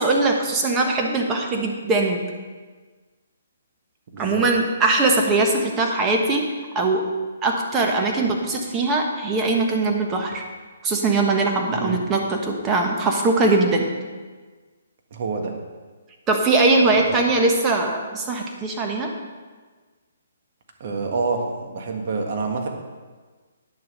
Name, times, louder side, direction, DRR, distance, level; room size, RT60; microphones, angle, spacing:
voice 1, 0.0-2.2 4.2-6.5 6.7-7.0 7.4-10.4 10.8-13.9 16.3-19.1, right 3 dB, 20° right, 1 dB, 1.4 m, -21 dB
voice 2, 4.1-4.4 11.7-12.0 15.1-15.6 20.8-22.7, right 4 dB, 50° right, 2 dB, 1.6 m, -27 dB
9.9 x 6.8 x 5.6 m, 1.4 s
hypercardioid pair, 140°, 0 cm